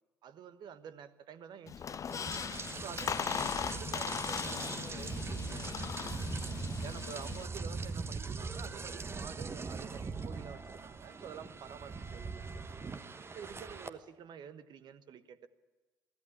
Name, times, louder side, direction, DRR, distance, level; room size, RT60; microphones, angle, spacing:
voice 1, 0.2-2.2 2.8-5.8 6.8-12.9 13.3-15.5, right 7 dB, 45° right, 12 dB, 1.2 m, -49 dB
Squeak, 1.7-7.5, left 7 dB, 30° left, 0.7 m, -38 dB
Rain, 2.1-13.9, right 4 dB, 25° right, 1.2 m, -41 dB
22.5 x 16.0 x 8.7 m, 1.2 s
figure-of-eight pair, 55°, 10 cm